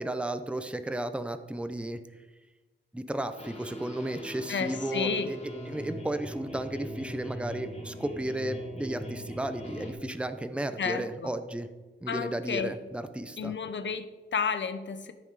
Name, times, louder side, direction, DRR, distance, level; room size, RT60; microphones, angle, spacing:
voice 1, 0.0-2.0 2.9-5.4 5.7-11.7 12.0-13.5, right 1 dB, 5° right, 9 dB, 0.6 m, -34 dB
sound 1, 3.4-9.9, equal, 35° left, 2.1 m, -41 dB
voice 2, 4.5-5.3 10.8-11.3 12.1-12.8 13.4-15.1, left 6 dB, 75° left, 10 dB, 0.8 m, -32 dB
13.5 x 5.9 x 4.7 m, 1.2 s
wide cardioid pair, 130°, 19 cm